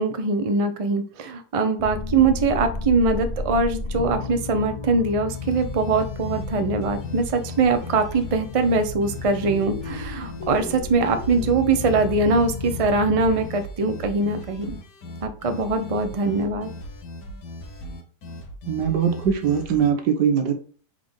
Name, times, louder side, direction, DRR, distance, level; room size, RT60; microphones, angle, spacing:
voice 1, 0.0-14.8 15.2-16.7, right 3 dB, 60° right, 7 dB, 0.3 m, -22 dB
sound 1, 1.8-13.5, left 4 dB, 40° left, 0.5 m, -33 dB
sound 2, 5.3-19.9, left 1 dB, 80° left, 1.7 m, -38 dB
voice 2, 18.7-20.5, right 7 dB, 85° right, 5 dB, 1.7 m, -21 dB
4.5 x 4.1 x 5.1 m, 0.42 s
omnidirectional pair, 1.8 m